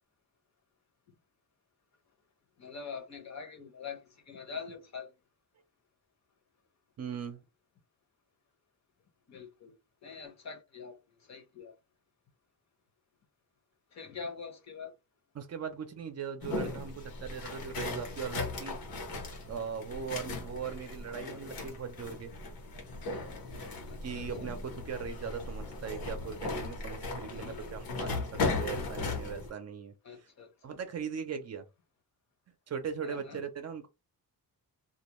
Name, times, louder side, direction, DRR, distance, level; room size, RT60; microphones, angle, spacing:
voice 1, 2.6-5.1 9.3-11.7 13.9-14.9 23.9-24.6 27.3-27.8 30.0-30.8 33.0-33.4, left 5 dB, 50° left, 0.8 m, -45 dB
voice 2, 7.0-7.4 15.3-19.0 19.5-22.3 24.0-28.3 28.5-29.9 30.6-31.7 32.7-33.9, right 6 dB, 45° right, 0.5 m, -39 dB
sound 1, 16.4-29.5, left 3 dB, 75° left, 1.0 m, -37 dB
2.4 x 2.2 x 3.0 m
wide cardioid pair, 150°, 36 cm